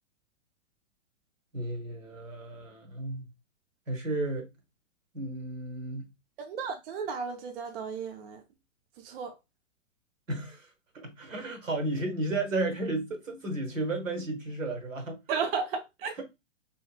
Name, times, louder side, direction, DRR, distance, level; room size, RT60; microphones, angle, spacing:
voice 1, 1.5-3.2 3.9-4.5 5.1-6.1 10.3-10.7 10.9-15.2, right 2 dB, 85° right, 1.0 m, -33 dB
voice 2, 6.4-8.4 9.0-9.3 15.3-16.1, right 5 dB, 50° right, 0.5 m, -33 dB
2.7 x 2.5 x 2.2 m
figure-of-eight pair, 110°, 38 cm